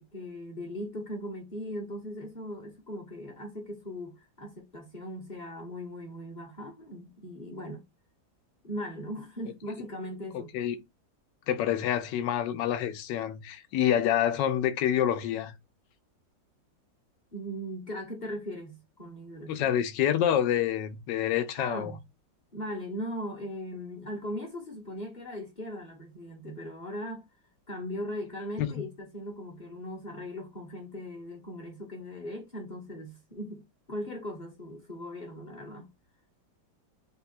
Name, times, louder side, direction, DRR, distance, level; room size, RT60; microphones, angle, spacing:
voice 1, 0.0-7.8 8.6-10.5 17.3-19.7 21.6-22.0 22.5-27.3 27.7-35.9, equal, 30° left, 1.0 m, -39 dB
voice 2, 10.3-10.8 11.5-15.5 19.5-21.9 28.6-28.7, left 10 dB, 75° left, 1.3 m, -27 dB
3.8 x 2.4 x 4.2 m
omnidirectional pair, 2.0 m